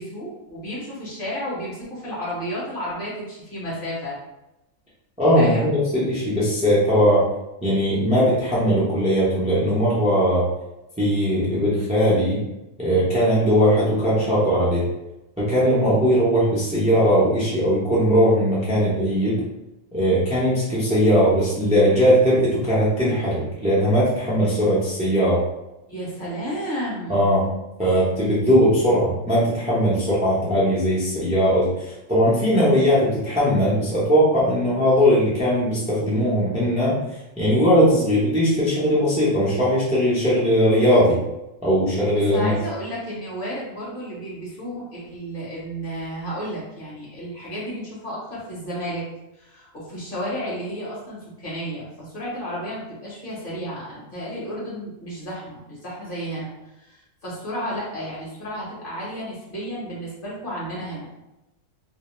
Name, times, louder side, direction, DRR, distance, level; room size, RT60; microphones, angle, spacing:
voice 1, 0.0-4.2 5.3-5.7 25.9-27.2 42.1-49.0 49.4-56.5 56.8-61.1, equal, 45° left, -7 dB, 1.1 m, -32 dB
voice 2, 5.2-7.2 7.6-10.4 11.0-12.4 12.8-14.8 15.4-19.4 19.9-25.4 27.1-27.5 27.8-37.0 37.4-41.2 41.6-42.5, equal, 10° right, -9 dB, 0.5 m, -19 dB
2.7 x 2.0 x 3.0 m, 0.95 s
omnidirectional pair, 1.4 m